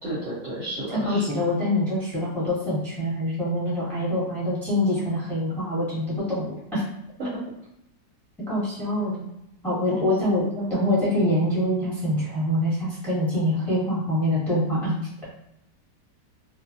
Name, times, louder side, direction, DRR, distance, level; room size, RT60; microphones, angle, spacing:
voice 1, 0.0-1.2 7.2-7.4 8.8-9.2 9.9-10.9, equal, 50° right, -9 dB, 1.0 m, -33 dB
voice 2, 1.0-6.8 8.5-9.1 9.6-10.4 10.7-15.0, left 1 dB, ahead, -9 dB, 1.2 m, -25 dB
2.6 x 2.5 x 2.6 m, 0.81 s
omnidirectional pair, 1.9 m